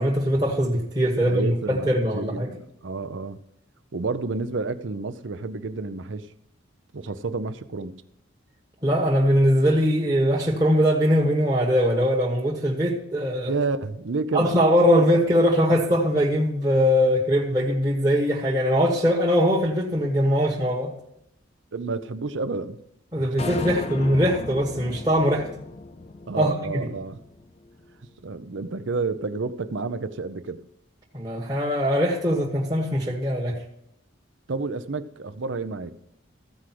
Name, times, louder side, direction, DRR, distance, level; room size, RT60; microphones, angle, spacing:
voice 1, 0.0-2.5 8.8-13.5 14.3-20.9 23.1-25.5 26.4-26.9 31.1-33.6, equal, 20° right, -3 dB, 1.2 m, -21 dB
voice 2, 1.2-3.4 3.9-6.3 6.9-8.0 13.5-14.5 15.0-15.1 15.8-16.0 21.7-22.8 23.2-23.3 23.7-23.8 26.3-27.2 28.2-30.6 34.5-35.9, right 3 dB, 65° right, 11 dB, 0.6 m, -30 dB
sound 1, 23.4-27.8, left 2 dB, 30° left, 0.5 m, -35 dB
14.5 x 4.9 x 6.0 m, 0.76 s
head